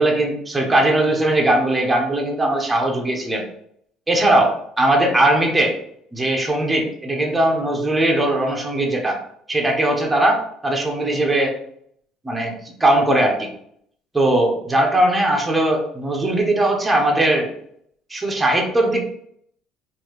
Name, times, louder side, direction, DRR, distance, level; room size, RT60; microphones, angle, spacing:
voice 1, 0.0-3.4 4.1-5.8 6.1-9.2 9.5-11.6 12.2-13.5 14.1-17.5 18.1-19.1, right 1 dB, 15° right, 1 dB, 0.8 m, -19 dB
4.6 x 2.6 x 3.0 m, 0.68 s
cardioid pair, 120°, 0 cm